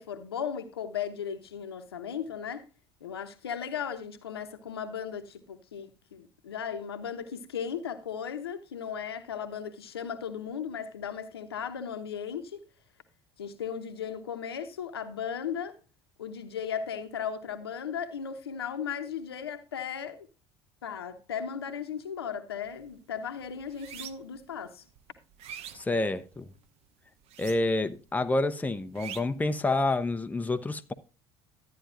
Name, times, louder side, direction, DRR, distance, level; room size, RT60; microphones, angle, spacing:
voice 1, 0.0-2.7 3.0-12.6 13.4-15.8 16.2-20.3 20.8-24.8, left 7 dB, 85° left, 0.9 m, -36 dB
sound 1, 22.6-22.9 23.3-24.4 24.9-26.6 27.2-28.0 28.2-29.5, right 9 dB, 55° right, 0.9 m, -44 dB
voice 2, 25.7-26.5 27.4-30.9, left 2 dB, 10° left, 0.8 m, -28 dB
12.5 x 9.4 x 2.5 m
hypercardioid pair, 65°, 13 cm